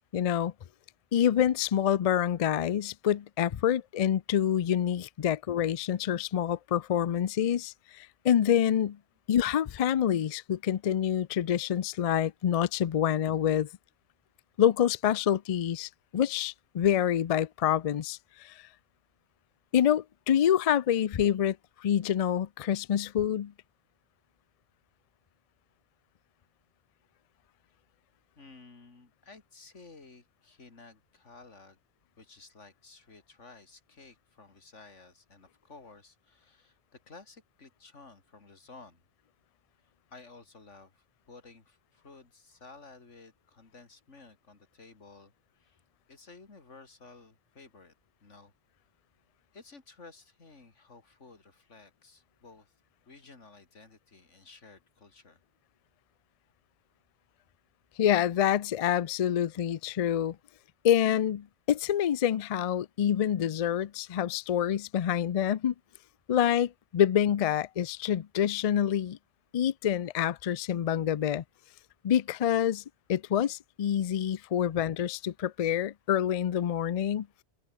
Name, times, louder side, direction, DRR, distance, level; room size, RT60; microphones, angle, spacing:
voice 1, 0.1-0.5 1.1-9.0 9.3-13.7 14.6-18.6 19.7-21.6 21.8-23.5 58.0-60.4 60.8-65.7 66.3-69.2 69.5-71.4 72.0-72.8 73.1-77.3, left 10 dB, 60° left, 0.3 m, -27 dB
voice 2, 28.4-31.8 32.2-39.0 40.1-45.8 46.1-47.9 48.2-48.5 49.5-52.7 53.1-55.4, left 3 dB, 80° left, 3.1 m, -54 dB
open air
omnidirectional pair, 1.2 m